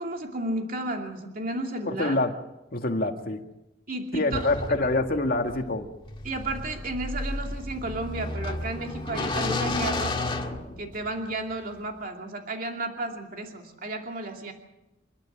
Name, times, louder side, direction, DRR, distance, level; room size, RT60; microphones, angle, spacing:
voice 1, 0.0-2.1 3.9-4.5 4.8-5.0 6.2-10.4 10.8-14.5, right 2 dB, 50° right, 2 dB, 2.7 m, -33 dB
voice 2, 1.9-2.4 2.7-3.4 4.1-5.9, left 2 dB, 55° left, 4 dB, 1.9 m, -26 dB
sound 1, 4.3-11.3, left 2 dB, 25° left, 2.0 m, -32 dB
28.0 x 11.5 x 8.6 m, 0.94 s
head